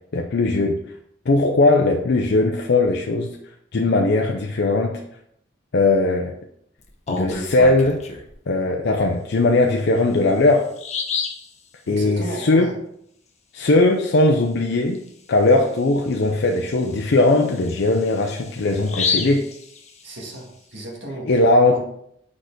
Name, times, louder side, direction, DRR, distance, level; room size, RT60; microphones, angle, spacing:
voice 1, 0.1-0.8 1.3-3.4 3.7-5.0 5.7-6.3 7.1-8.0 8.5-10.7 11.9-12.7 13.5-15.0 15.3-19.4 21.3-21.8, left 2 dB, 65° left, 2 dB, 0.5 m, -19 dB
Bird vocalization bird call bird song, 6.8-8.3 9.8-9.9 10.3-10.4 10.8-11.5 14.9-15.1 15.5-15.6 16.1-20.3, left 5 dB, 35° left, 0.8 m, -29 dB
voice 2, 11.8-12.8 20.0-21.3 21.7-21.8, right 1 dB, 80° right, -1 dB, 1.7 m, -33 dB
4.8 x 4.5 x 4.4 m, 0.72 s
head